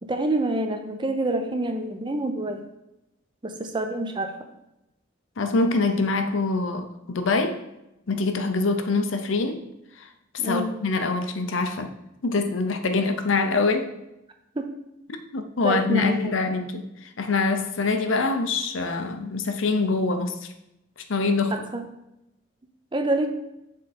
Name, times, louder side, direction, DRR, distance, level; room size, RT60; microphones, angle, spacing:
voice 1, 0.0-2.6 3.4-4.3 10.4-10.7 14.6-14.7 15.6-16.3 21.5-21.8 22.9-23.3, right 1 dB, 25° right, 0.5 m, -27 dB
voice 2, 5.4-7.6 8.1-9.7 10.0-10.1 10.4-11.9 12.2-13.9 15.1-20.5 21.1-21.6, left 3 dB, 80° left, 0.6 m, -25 dB
6.3 x 3.7 x 4.2 m
head